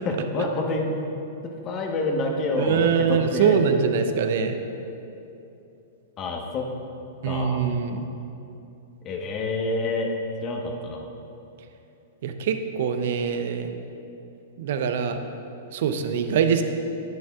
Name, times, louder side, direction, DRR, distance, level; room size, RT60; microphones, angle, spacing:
voice 1, 0.0-0.9 1.4-3.6 6.2-6.7 7.2-7.7 9.0-10.1 10.4-11.1, left 2 dB, 35° left, 1 dB, 1.1 m, -28 dB
voice 2, 2.6-4.6 7.2-8.1 12.2-13.7 14.6-15.2 15.7-16.6, right 6 dB, 65° right, 7 dB, 0.6 m, -23 dB
10.5 x 8.6 x 2.4 m, 2.8 s
hypercardioid pair, 115°, 0 cm